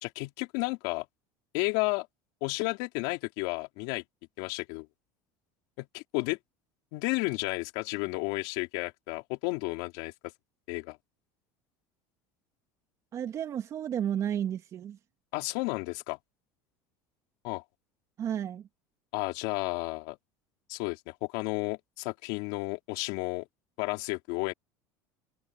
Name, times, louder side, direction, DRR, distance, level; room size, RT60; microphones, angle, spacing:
voice 1, 0.0-1.0 1.5-2.1 2.4-4.0 4.4-4.9 5.8-6.4 6.9-10.1 10.7-11.0 15.3-16.2 17.4-17.6 19.1-20.2 20.7-23.4 23.8-24.5, left 25 dB, 70° left, 4.1 m, -32 dB
voice 2, 13.1-15.0 18.2-18.7, right 9 dB, 35° right, 2.5 m, -32 dB
supercardioid pair, 135°, 9 cm